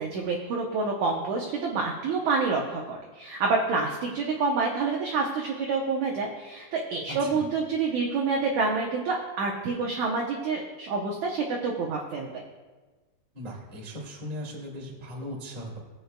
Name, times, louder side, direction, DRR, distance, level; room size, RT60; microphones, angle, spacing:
voice 1, 0.0-12.4, right 4 dB, 75° right, 0 dB, 1.7 m, -28 dB
voice 2, 7.1-7.4 13.3-15.8, equal, 20° right, -2 dB, 1.2 m, -38 dB
20.0 x 8.0 x 2.2 m, 1.3 s
omnidirectional pair, 4.4 m